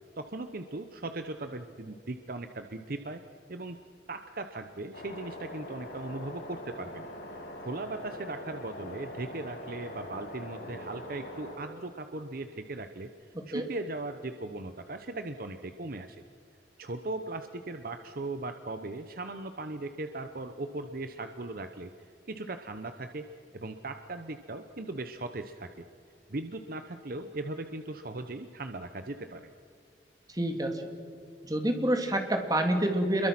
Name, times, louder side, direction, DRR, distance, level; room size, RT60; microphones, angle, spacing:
voice 1, 0.2-3.2 3.5-3.8 4.1-7.1 7.3-16.2 16.8-23.3 23.5-25.8 26.3-29.5, right 2 dB, 55° right, 8 dB, 0.9 m, -38 dB
sound 1, 4.9-11.6, left 1 dB, 85° left, 5.7 m, -43 dB
voice 2, 30.3-30.8 31.4-33.3, right 1 dB, 20° right, 4 dB, 2.4 m, -27 dB
27.5 x 23.0 x 6.0 m, 2.3 s
head